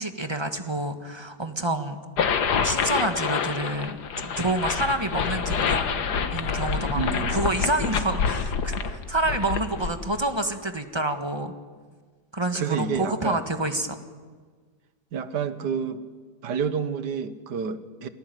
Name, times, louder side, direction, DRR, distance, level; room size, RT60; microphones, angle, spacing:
voice 1, 0.0-2.0 2.6-4.0 4.2-5.8 6.3-11.5 12.3-14.0, right 2 dB, 15° right, 7 dB, 1.6 m, -28 dB
sound 1, 2.2-10.2, left 6 dB, 80° left, 1.9 m, -27 dB
voice 2, 6.9-7.5 12.6-13.4 15.1-16.0 16.4-18.1, right 6 dB, 85° right, 12 dB, 1.8 m, -29 dB
27.5 x 19.5 x 9.3 m, 1.5 s
omnidirectional pair, 1.7 m